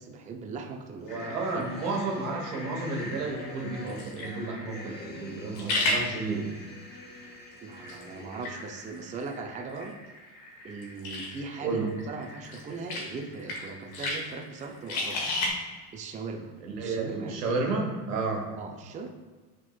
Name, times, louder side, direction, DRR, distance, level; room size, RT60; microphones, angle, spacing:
voice 1, 0.0-1.7 7.6-10.0 10.6-15.3 15.9-17.7 18.6-19.1, right 4 dB, 20° right, 4 dB, 0.4 m, -39 dB
voice 2, 1.0-6.5 11.6-11.9 16.6-18.4, right 3 dB, 85° right, 0 dB, 1.1 m, -31 dB
sound 1, 1.1-15.5, left 2 dB, 75° left, 1.3 m, -36 dB
sound 2, 1.1-9.0, left 3 dB, 20° left, 0.8 m, -48 dB
5.8 x 3.8 x 2.3 m, 1.4 s
hypercardioid pair, 80°, 45 cm